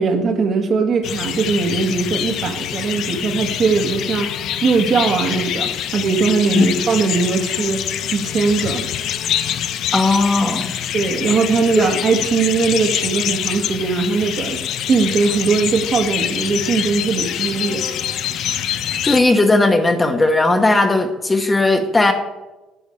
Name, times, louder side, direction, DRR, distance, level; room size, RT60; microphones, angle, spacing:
voice 1, 0.0-4.3 4.6-8.9 10.9-14.6 14.9-17.9, right 4 dB, 45° right, 4 dB, 1.7 m, -20 dB
sound 1, 1.0-19.2, left 10 dB, 65° left, 0.8 m, -25 dB
voice 2, 9.9-10.7 11.8-11.9 19.0-22.1, left 2 dB, 15° left, 5 dB, 1.1 m, -16 dB
11.0 x 6.4 x 8.5 m, 1.1 s
cardioid pair, 125°, 0 cm